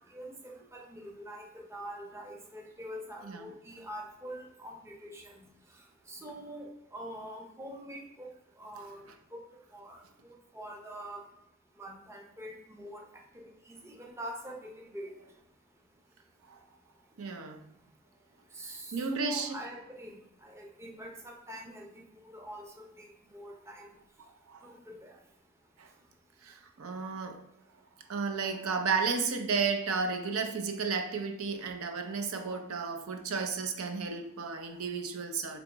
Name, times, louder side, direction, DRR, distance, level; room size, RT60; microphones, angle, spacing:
voice 1, 0.1-5.3 6.1-8.3 8.6-9.4 9.7-11.2 11.8-13.0 13.3-15.1 18.5-20.1 20.4-23.9 24.6-25.2 32.4-32.6, equal, 15° right, 1 dB, 0.5 m, -45 dB
voice 2, 17.2-17.6 18.9-19.5 24.5-24.7 25.8-25.9 26.4-27.4 28.1-35.6, right 5 dB, 85° right, 6 dB, 0.5 m, -33 dB
3.4 x 2.9 x 3.9 m, 0.84 s
head